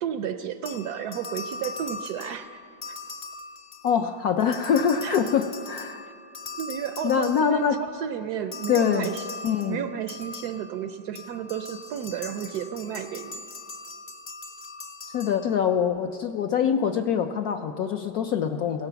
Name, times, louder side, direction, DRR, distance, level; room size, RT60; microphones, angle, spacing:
voice 1, 0.0-2.6 2.9-3.0 5.0-5.3 6.6-7.7 7.9-9.3 9.6-13.4, right 9 dB, 75° right, 10 dB, 0.9 m, -32 dB
sound 1, 0.6-4.1 4.4-7.9 8.5-15.8, left 3 dB, 50° left, 0.5 m, -40 dB
voice 2, 3.8-6.1 7.0-7.8 8.7-9.1 9.4-9.8 15.0-18.9, left 7 dB, 75° left, 7 dB, 0.8 m, -24 dB
16.5 x 11.5 x 6.9 m, 2.6 s
omnidirectional pair, 2.2 m